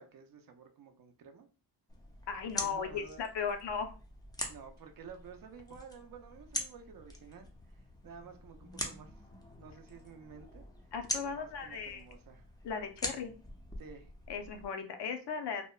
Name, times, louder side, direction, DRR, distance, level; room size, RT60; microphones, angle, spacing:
voice 1, 0.0-1.5 2.6-3.2 4.5-9.2 9.6-10.6 11.2-12.5 13.8-14.1, right 6 dB, 55° right, 6 dB, 0.5 m, -52 dB
sound 1, 1.9-14.7, left 1 dB, 10° left, 0.4 m, -44 dB
voice 2, 2.3-3.9 10.9-12.0 12.6-13.3 14.3-15.7, left 6 dB, 75° left, 7 dB, 0.6 m, -37 dB
2.8 x 2.1 x 2.3 m, 0.35 s
wide cardioid pair, 135°, 41 cm